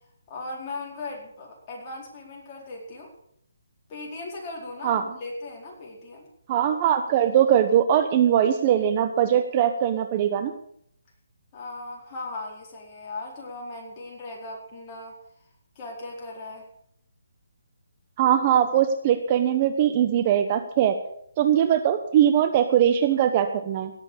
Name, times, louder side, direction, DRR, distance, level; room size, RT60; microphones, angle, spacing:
voice 1, 0.3-3.1 3.9-6.3 11.5-15.1 15.7-16.7, left 2 dB, 25° left, -2 dB, 4.7 m, -38 dB
voice 2, 6.5-10.5 18.2-21.0 21.4-23.9, right 10 dB, 30° right, 8 dB, 1.0 m, -21 dB
17.0 x 8.1 x 7.1 m, 0.69 s
hypercardioid pair, 160°, 0 cm